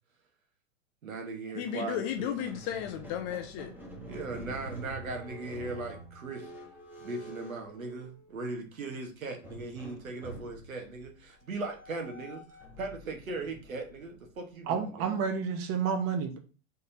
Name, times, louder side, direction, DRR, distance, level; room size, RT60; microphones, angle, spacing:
voice 1, 1.0-2.3 4.1-6.5 7.0-12.4 12.8-15.1, right 3 dB, 90° right, 3 dB, 1.3 m, -38 dB
voice 2, 1.5-3.7, left 9 dB, 25° left, 6 dB, 0.3 m, -34 dB
Squeak, 2.1-8.5 9.4-14.6, right 1 dB, 5° right, 1.1 m, -47 dB
voice 3, 14.7-16.4, right 6 dB, 35° right, 6 dB, 1.0 m, -30 dB
3.9 x 3.6 x 2.7 m, 0.35 s
hypercardioid pair, 115°, 40 cm